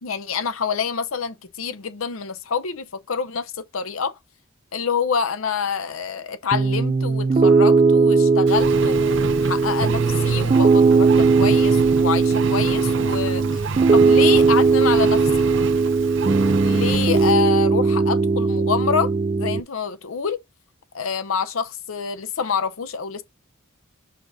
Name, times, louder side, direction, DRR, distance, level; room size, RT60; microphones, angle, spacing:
voice 1, 0.0-4.2 4.7-13.6 13.9-15.5 16.6-20.4 20.9-23.2, left 6 dB, 85° left, 0.7 m, -27 dB
Piano, 6.5-19.6, right 4 dB, 30° right, 0.3 m, -18 dB
Engine, 8.5-17.3, right 4 dB, 60° right, 0.7 m, -30 dB
5.3 x 4.0 x 4.7 m
head